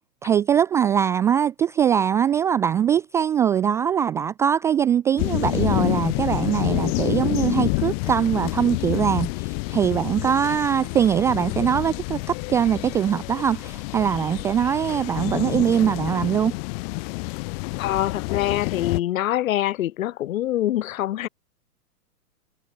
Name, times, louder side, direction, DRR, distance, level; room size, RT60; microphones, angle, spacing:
voice 1, 0.2-16.5, right 9 dB, 5° right, 0.4 m, -22 dB
sound 1, 5.2-19.0, left 31 dB, 40° left, 3.1 m, -28 dB
voice 2, 17.8-21.3, left 13 dB, 60° left, 6.1 m, -24 dB
hypercardioid pair, 140°, 45 cm